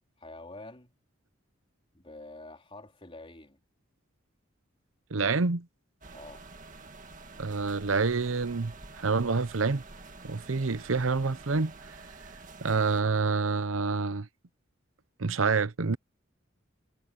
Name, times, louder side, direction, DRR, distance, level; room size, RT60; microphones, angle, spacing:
voice 1, 0.2-0.9 1.9-3.6 6.1-6.4, left 2 dB, 25° left, 3.7 m, -47 dB
voice 2, 5.1-5.7 7.4-9.8 10.2-11.7 12.6-14.3 15.2-16.0, right 4 dB, 85° right, 0.8 m, -27 dB
sound 1, 6.0-13.0, right 3 dB, 40° right, 1.9 m, -48 dB
head